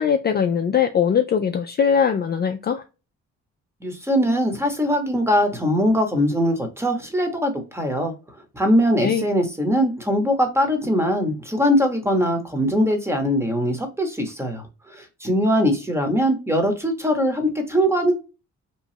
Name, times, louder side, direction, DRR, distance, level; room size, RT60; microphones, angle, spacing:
voice 1, 0.0-2.8 9.0-9.2, left 7 dB, 35° left, 0.4 m, -21 dB
voice 2, 3.8-8.1 8.5-14.6 14.9-18.1, equal, 10° right, 1.0 m, -21 dB
3.0 x 2.3 x 2.7 m
cardioid pair, 90°, 30 cm